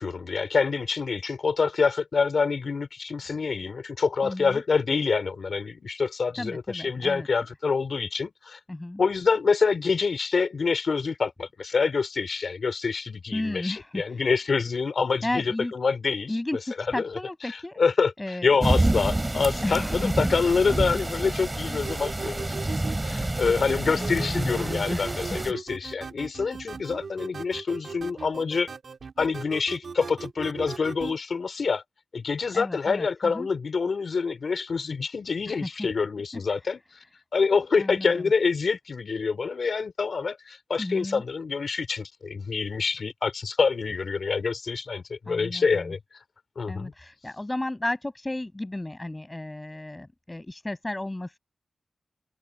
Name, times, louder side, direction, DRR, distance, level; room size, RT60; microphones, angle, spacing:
voice 1, 0.0-8.6 9.0-16.3 17.0-17.1 17.8-28.7 29.2-31.8 32.1-36.8 37.3-46.2 46.6-46.9, left 5 dB, 65° left, 4.3 m, -26 dB
voice 2, 4.2-4.6 6.4-7.3 8.7-9.0 13.3-14.2 15.2-15.7 16.3-17.8 18.2-18.6 19.6-20.1 23.9-25.2 32.5-33.5 35.5-35.9 36.5-36.6 37.8-38.2 40.8-41.2 45.3-45.9 46.7-51.4, left 1 dB, 20° left, 7.9 m, -33 dB
sound 1, 18.6-25.5, right 2 dB, 20° right, 3.5 m, -28 dB
sound 2, 21.8-31.2, right 5 dB, 70° right, 2.3 m, -38 dB
wide cardioid pair, 115°, 0 cm